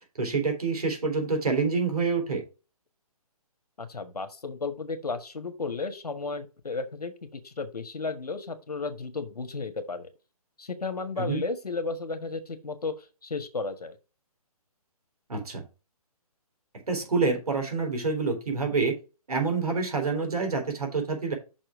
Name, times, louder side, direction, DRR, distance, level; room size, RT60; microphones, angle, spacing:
voice 1, 0.2-2.4 11.2-11.4 15.3-15.6 16.9-18.9 19.3-21.3, right 4 dB, 75° right, 3 dB, 3.7 m, -27 dB
voice 2, 3.8-10.1 10.6-14.0, left 4 dB, 85° left, 8 dB, 1.6 m, -34 dB
6.2 x 4.5 x 6.1 m, 0.31 s
figure-of-eight pair, 140°, 19 cm